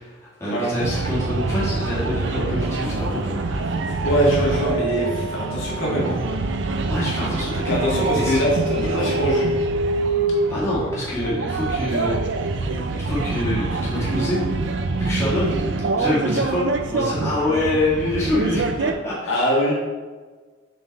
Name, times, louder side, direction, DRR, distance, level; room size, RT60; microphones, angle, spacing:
voice 1, 0.0-3.7 6.9-8.4 10.5-14.5 15.0-19.4, left 1 dB, 15° left, -9 dB, 2.0 m, -26 dB
sound 1, 0.8-18.9, right 3 dB, 65° right, 0.5 m, -25 dB
voice 2, 4.0-6.2 7.7-9.5 19.3-19.7, equal, 80° left, -4 dB, 1.9 m, -22 dB
7.5 x 3.9 x 4.1 m, 1.4 s
head